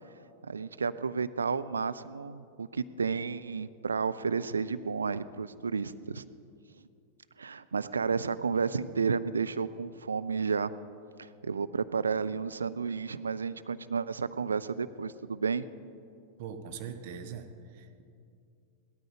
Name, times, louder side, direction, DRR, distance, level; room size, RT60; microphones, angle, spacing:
voice 1, 0.4-6.2 7.4-10.7 11.2-15.7, right 5 dB, 75° right, 13 dB, 0.4 m, -32 dB
voice 2, 16.4-18.0, right 6 dB, 50° right, 6 dB, 1.1 m, -42 dB
17.0 x 13.0 x 4.9 m, 2.5 s
figure-of-eight pair, 90°, 0 cm